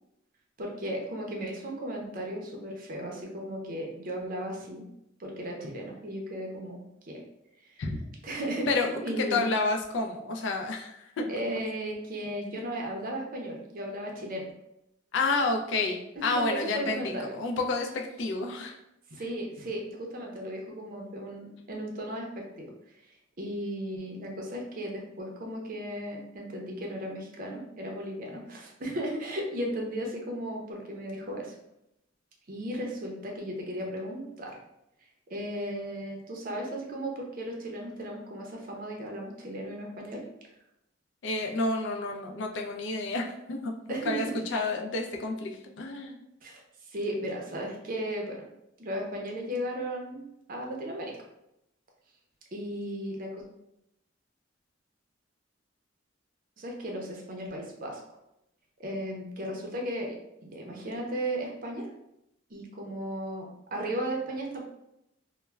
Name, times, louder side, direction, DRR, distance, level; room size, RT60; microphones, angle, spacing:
voice 1, 0.6-4.8 5.2-7.2 7.6-7.7 8.2-9.4 11.3-14.5 16.2-17.3 19.1-22.7 23.4-31.6 32.5-34.6 35.3-40.2 43.9-44.2 44.5-44.7 46.4-48.5 48.8-50.2 50.5-51.1 52.5-53.4 56.6-58.0 58.8-60.1 60.4-61.9 62.5-64.6, right 1 dB, 45° right, 0 dB, 0.5 m, -35 dB
voice 2, 8.7-11.6 15.1-18.8 41.2-46.2, left 3 dB, 65° left, 2 dB, 0.4 m, -30 dB
2.2 x 2.1 x 3.2 m, 0.83 s
head